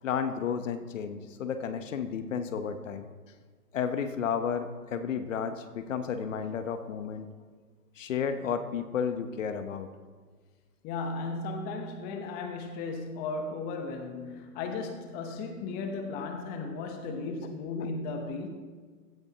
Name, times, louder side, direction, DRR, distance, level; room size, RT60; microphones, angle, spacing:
voice 1, 0.0-3.1 3.7-7.3 8.0-9.9 17.8-17.9, left 7 dB, 55° left, 10 dB, 1.1 m, -32 dB
voice 2, 10.8-18.5, left 3 dB, 20° left, 6 dB, 0.9 m, -35 dB
16.0 x 12.0 x 2.9 m, 1.5 s
hypercardioid pair, 130°, 46 cm